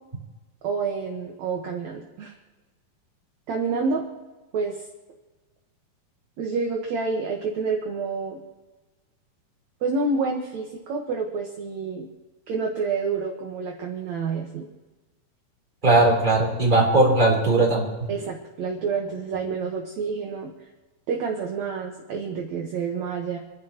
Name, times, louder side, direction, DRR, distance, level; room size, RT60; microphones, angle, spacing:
voice 1, 0.6-2.3 3.5-4.0 4.5-4.8 6.4-8.4 9.8-12.1 12.5-14.7 18.1-20.5 21.1-23.4, right 4 dB, 55° right, 0 dB, 2.3 m, -28 dB
voice 2, 15.8-18.1, right 2 dB, 10° right, -4 dB, 3.5 m, -19 dB
28.5 x 11.5 x 3.1 m, 1.2 s
omnidirectional pair, 4.4 m